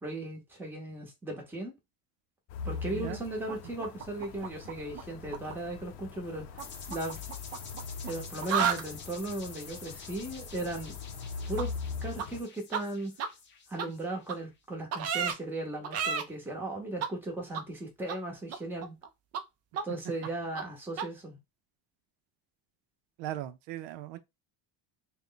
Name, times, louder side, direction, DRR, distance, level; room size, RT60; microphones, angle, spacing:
voice 1, 0.0-1.7 2.6-6.6 6.9-7.2 8.0-11.0 11.5-11.7 12.0-13.1 13.7-19.0 19.8-21.4, right 2 dB, 5° right, 0.9 m, -37 dB
sound 1, 2.5-12.4, left 5 dB, 75° left, 0.6 m, -42 dB
voice 2, 2.9-3.2 23.2-24.2, right 13 dB, 80° right, 0.6 m, -38 dB
sound 2, 3.5-5.0 5.3-5.5 6.6-8.1 8.4-8.8 11.6-11.7 12.2-12.3 12.7-12.8 13.2-13.3 13.8-13.9 14.3-14.4 14.9-15.3 15.8-16.2 17.0-17.1 17.5-17.6 18.1-18.2 18.5-19.1 19.3-19.4 19.7-19.8 20.2-20.3 20.5-20.6 21.0-21.1, right 7 dB, 35° right, 0.4 m, -31 dB
sound 3, 6.6-14.4, left 5 dB, 25° left, 0.6 m, -48 dB
3.3 x 2.2 x 3.8 m
cardioid pair, 165°, 43 cm